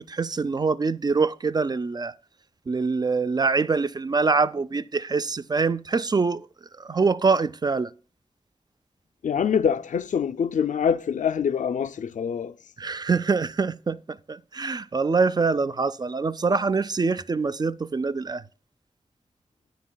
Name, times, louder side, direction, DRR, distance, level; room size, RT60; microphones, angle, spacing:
voice 1, 0.0-2.1 2.7-6.5 6.8-7.9 12.8-18.4, right 4 dB, 35° right, 0.3 m, -24 dB
voice 2, 9.2-12.5, left 7 dB, 80° left, 0.4 m, -25 dB
13.5 x 9.3 x 2.2 m
wide cardioid pair, 100°, 13 cm